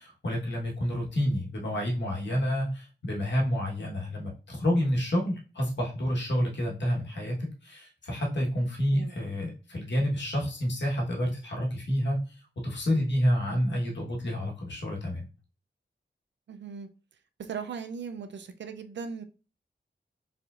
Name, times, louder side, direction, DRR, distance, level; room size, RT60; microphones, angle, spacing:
voice 1, 0.0-7.4 7.6-12.3 12.6-15.2, equal, 80° left, 1.3 m, -29 dB
voice 2, 16.5-16.9 17.4-19.2, right 6 dB, 85° right, 0.4 m, -38 dB
4.6 x 3.5 x 2.4 m
wide cardioid pair, 115°, 18 cm